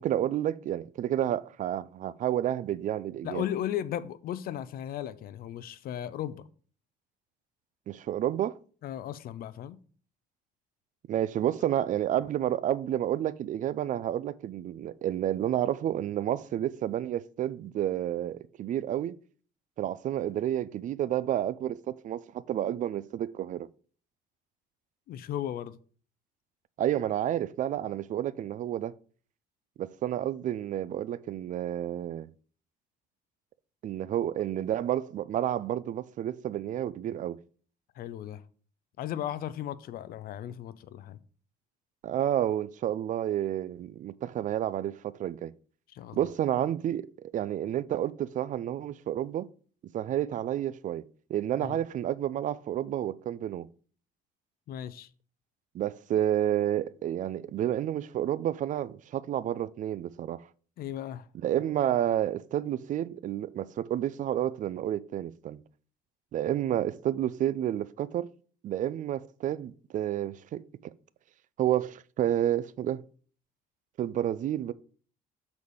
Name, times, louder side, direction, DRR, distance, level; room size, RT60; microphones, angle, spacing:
voice 1, 0.0-3.4 7.9-8.6 11.1-19.2 19.8-23.7 26.8-28.9 29.8-32.3 33.8-37.4 42.0-45.5 46.1-47.1 47.3-49.5 49.9-51.0 51.3-53.7 55.7-60.4 61.4-65.6 66.3-68.3 68.6-70.6 71.6-73.0 74.0-74.7, right 11 dB, 50° right, 0.4 m, -30 dB
voice 2, 3.2-6.5 8.8-9.8 25.1-25.8 38.0-38.4 39.0-41.2 45.9-46.2 51.6-51.8 54.7-55.1 60.8-61.3, left 11 dB, 60° left, 0.5 m, -36 dB
7.1 x 4.1 x 4.9 m
cardioid pair, 110°, 17 cm